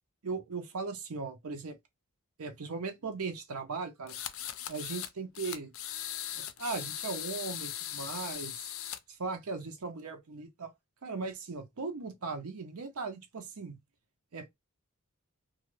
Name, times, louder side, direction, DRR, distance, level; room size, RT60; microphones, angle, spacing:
voice 1, 0.2-1.8 2.4-4.1 4.7-5.7 6.3-8.7 9.1-10.7 11.0-13.8 14.3-14.5, right 4 dB, 75° right, 0.7 m, -38 dB
sound 1, 4.1-5.1 5.4-9.0, left 11 dB, 60° left, 0.4 m, -39 dB
2.4 x 2.4 x 3.0 m
head